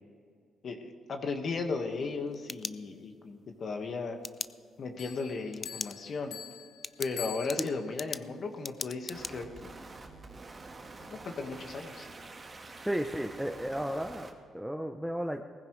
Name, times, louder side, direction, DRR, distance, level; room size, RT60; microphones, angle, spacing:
voice 1, 0.6-4.2 4.8-6.4 7.0-9.7 11.0-12.1, left 4 dB, 50° left, 4 dB, 1.6 m, -36 dB
sound 1, 2.1-3.3 4.2-4.5 5.5-5.9 6.3-6.4 6.8-9.3, left 4 dB, 35° left, 0.4 m, -39 dB
Bell, 5.0-8.1, left 9 dB, 85° left, 1.3 m, -45 dB
sound 2, 9.1-14.3, right 3 dB, 30° right, 1.6 m, -47 dB
voice 2, 12.8-15.4, equal, 5° right, 4 dB, 0.7 m, -34 dB
19.0 x 15.0 x 3.2 m, 2.1 s
cardioid pair, 90°, 0 cm